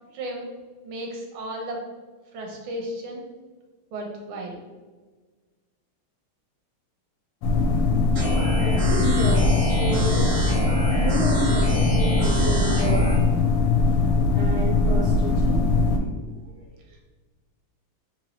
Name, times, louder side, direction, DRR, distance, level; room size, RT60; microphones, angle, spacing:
voice 1, 0.1-0.5 0.8-1.8 2.3-3.3 3.9-4.6 16.9-17.0, right 1 dB, 80° right, 1 dB, 1.5 m, -34 dB
sound 1, 7.4-16.0, left 3 dB, 80° left, 1.4 m, -21 dB
sound 2, 8.1-13.1, right 1 dB, 65° right, 0.6 m, -26 dB
voice 2, 8.6-10.3 10.9-13.1 14.3-16.6, right 1 dB, 30° left, -8 dB, 0.6 m, -31 dB
3.9 x 3.0 x 3.0 m, 1.4 s
omnidirectional pair, 2.4 m